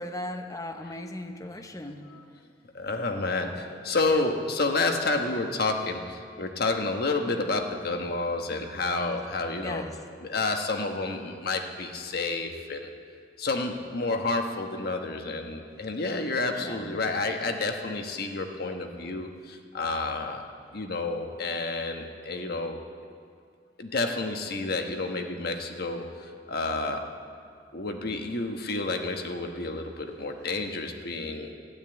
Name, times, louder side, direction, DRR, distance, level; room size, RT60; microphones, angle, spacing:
voice 1, 0.0-2.1 3.4-3.7 9.6-10.0 16.6-17.3, left 1 dB, 20° left, 7 dB, 0.8 m, -38 dB
voice 2, 2.7-9.9 10.2-12.9 13.4-20.5 20.7-22.8 23.8-26.0 26.5-27.0 27.7-31.6, left 3 dB, 60° left, 4 dB, 1.2 m, -30 dB
12.5 x 9.0 x 9.0 m, 2.1 s
head